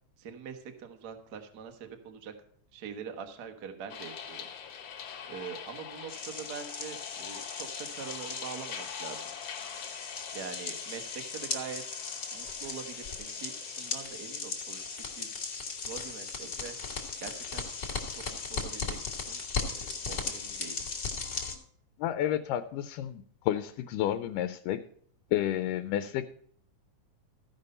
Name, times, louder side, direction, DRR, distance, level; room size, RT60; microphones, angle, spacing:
voice 1, 0.2-2.3 2.7-4.5 5.2-9.3 10.3-12.0 12.3-15.4 15.8-16.9 17.2-17.7 18.3-20.9, right 7 dB, 85° right, 6 dB, 0.8 m, -44 dB
sound 1, 3.9-21.1, left 8 dB, 60° left, 2.0 m, -46 dB
sound 2, 6.1-21.6, left 5 dB, 40° left, 1.6 m, -38 dB
voice 2, 22.0-24.8 25.3-26.2, left 12 dB, 85° left, 10 dB, 2.1 m, -31 dB
15.0 x 5.3 x 5.4 m, 0.64 s
omnidirectional pair, 3.7 m